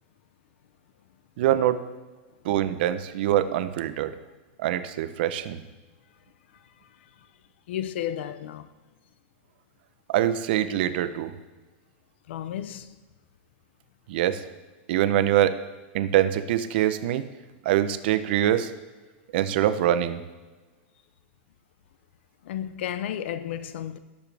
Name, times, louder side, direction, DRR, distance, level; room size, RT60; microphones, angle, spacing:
voice 1, 1.4-1.8 2.4-4.1 4.6-5.6 10.1-11.3 14.1-14.4 14.9-15.6 15.9-17.2 17.6-18.7 19.3-20.2, right 12 dB, 60° right, 0.7 m, -24 dB
voice 2, 7.7-8.7 12.3-12.9 22.4-24.0, left 10 dB, 70° left, 0.7 m, -32 dB
17.5 x 7.1 x 3.4 m
supercardioid pair, 165°, 6 cm